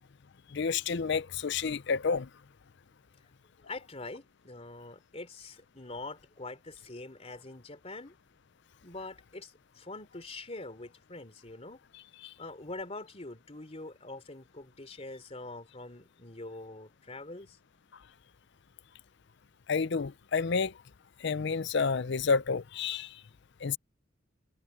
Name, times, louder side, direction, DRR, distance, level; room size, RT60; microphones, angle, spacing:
voice 1, 0.5-2.3 12.2-12.3 19.7-20.7 21.2-23.2 23.6-23.8, left 5 dB, 60° left, 0.6 m, -30 dB
voice 2, 3.7-8.1 8.8-11.8 12.4-17.6, left 2 dB, 35° left, 3.5 m, -44 dB
head